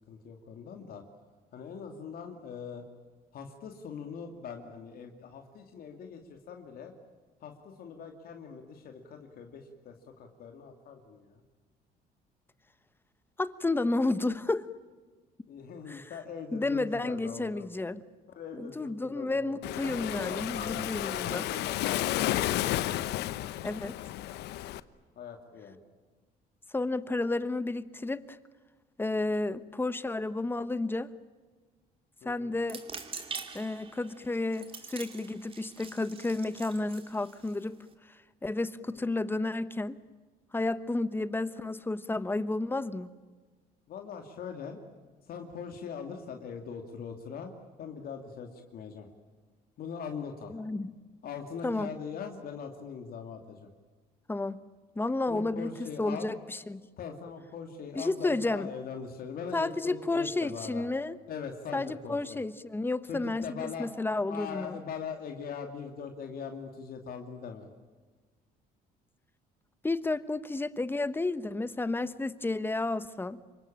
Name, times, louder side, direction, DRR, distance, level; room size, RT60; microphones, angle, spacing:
voice 1, 0.1-1.0 1.5-2.8 3.3-6.9 7.4-11.4 15.5-17.7 18.4-19.6 20.1-22.7 25.2-25.8 32.2-32.5 38.9-39.0 43.9-44.8 45.3-47.5 47.8-49.1 49.8-50.5 51.2-53.7 55.3-56.4 57.0-60.8 61.3-62.4 63.1-63.9 64.3-67.7, left 6 dB, 60° left, 4 dB, 2.7 m, -41 dB
voice 2, 13.4-14.7 15.9-16.1 16.5-18.0 18.5-21.4 23.6-24.0 26.7-28.4 29.0-31.1 32.2-32.8 33.5-37.8 38.4-40.0 40.5-43.1 50.5-51.0 51.6-51.9 54.3-54.6 54.9-56.8 57.9-58.7 59.5-61.2 61.7-64.8 69.8-73.4, left 2 dB, 10° left, 14 dB, 1.2 m, -31 dB
Waves surf, 19.6-24.8, left 14 dB, 80° left, 1.0 m, -32 dB
sound 1, 32.6-37.9, right 5 dB, 35° right, 2.7 m, -45 dB
27.5 x 23.5 x 8.9 m, 1.4 s
cardioid pair, 110°, 17 cm